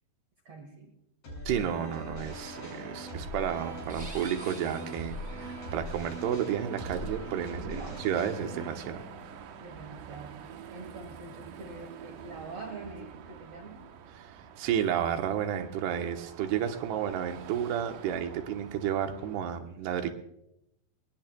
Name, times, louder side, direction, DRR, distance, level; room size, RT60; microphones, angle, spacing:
voice 1, 0.5-0.9 7.6-8.0 9.6-13.8, right 3 dB, 55° right, 3 dB, 2.0 m, -45 dB
sound 1, 1.2-10.4, left 1 dB, 50° left, 7.7 m, -42 dB
voice 2, 1.5-9.1 14.6-20.1, right 9 dB, 85° right, 6 dB, 3.2 m, -31 dB
Car passing by / Traffic noise roadway noise / Engine, 2.3-19.4, right 8 dB, 70° right, 2.6 m, -47 dB
sound 2, 3.8-5.8, right 2 dB, 10° right, 1.5 m, -48 dB
25.0 x 19.5 x 2.3 m, 0.83 s
omnidirectional pair, 4.6 m